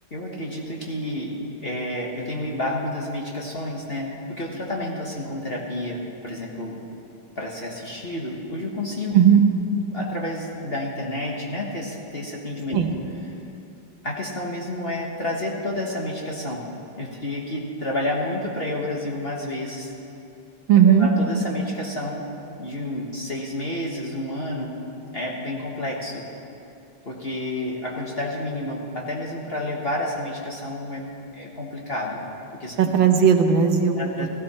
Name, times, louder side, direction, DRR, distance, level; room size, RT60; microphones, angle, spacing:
voice 1, 0.1-6.8 7.3-9.2 9.9-12.8 14.0-16.6 17.0-19.9 20.8-22.3 22.6-24.7 25.1-26.2 27.0-32.2 32.6-32.9 34.0-34.3, left 1 dB, 35° left, -2 dB, 1.3 m, -30 dB
voice 2, 20.7-21.1 32.8-34.3, right 8 dB, 70° right, 4 dB, 1.7 m, -16 dB
16.0 x 15.0 x 4.3 m, 2.8 s
omnidirectional pair, 2.3 m